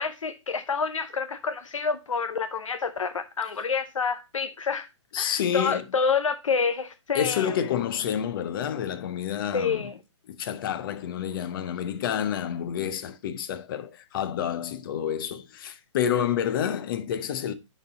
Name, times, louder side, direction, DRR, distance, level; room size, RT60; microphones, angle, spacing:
voice 1, 0.0-4.9 5.2-7.6 9.5-10.0, left 5 dB, 90° left, 0.6 m, -28 dB
voice 2, 5.1-5.8 7.1-9.9 10.3-17.5, left 9 dB, 45° left, 0.8 m, -29 dB
9.1 x 4.2 x 3.9 m
hypercardioid pair, 140°, 16 cm